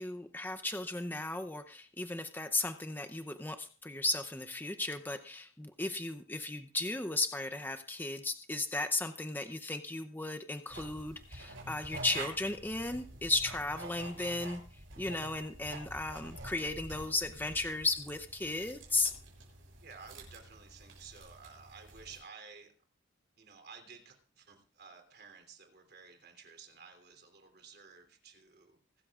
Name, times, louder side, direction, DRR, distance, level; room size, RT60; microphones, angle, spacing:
voice 1, 0.0-19.1, left 2 dB, 10° left, 8 dB, 0.6 m, -35 dB
sound 1, 10.7-22.2, right 2 dB, 75° right, 7.5 m, -48 dB
voice 2, 19.8-22.7 23.4-28.8, right 5 dB, 55° right, 5 dB, 3.1 m, -53 dB
25.0 x 13.0 x 2.4 m, 0.38 s
head